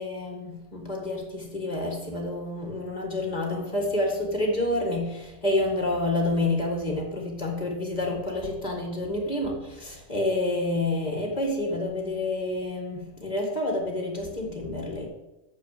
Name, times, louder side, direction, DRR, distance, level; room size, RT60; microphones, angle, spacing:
voice 1, 0.0-15.1, left 2 dB, 30° left, 1 dB, 0.8 m, -28 dB
9.0 x 6.5 x 7.6 m, 0.99 s
omnidirectional pair, 4.3 m